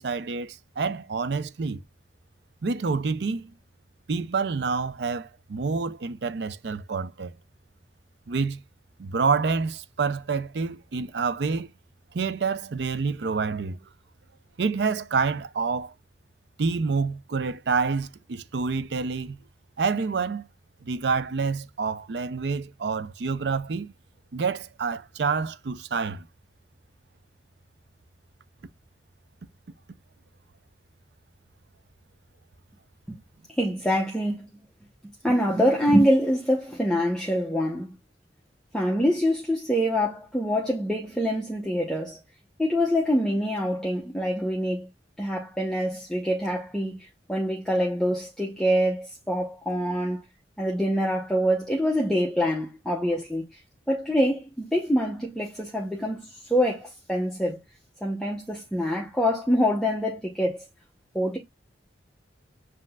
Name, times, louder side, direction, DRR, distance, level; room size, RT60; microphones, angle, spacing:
voice 1, 0.0-1.8 2.6-3.5 4.1-7.3 8.3-8.6 9.0-11.7 12.1-13.8 14.6-15.9 16.6-19.4 19.8-20.4 20.8-23.9 24.3-26.3, right 4 dB, 70° right, 0.5 m, -27 dB
voice 2, 33.6-34.5 35.2-38.0 38.7-42.2 42.6-44.9 45.2-50.2 50.6-53.6 53.9-57.6 58.0-60.7 61.1-61.4, equal, 5° left, 0.8 m, -25 dB
7.4 x 2.8 x 2.3 m
head